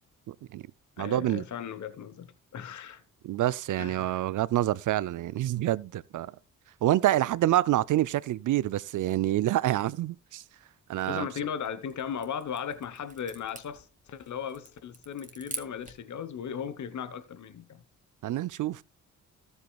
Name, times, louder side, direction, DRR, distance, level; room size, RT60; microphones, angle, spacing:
voice 1, 0.3-0.6 1.0-1.4 3.2-6.3 6.8-10.4 10.9-11.3 18.2-18.8, right 14 dB, 60° right, 0.5 m, -27 dB
voice 2, 1.0-3.0 3.8-4.2 11.1-17.8, left 8 dB, 55° left, 1.0 m, -37 dB
sound 1, 11.6-16.1, right 3 dB, 20° right, 2.0 m, -46 dB
14.0 x 8.0 x 2.3 m
supercardioid pair, 60°, 35 cm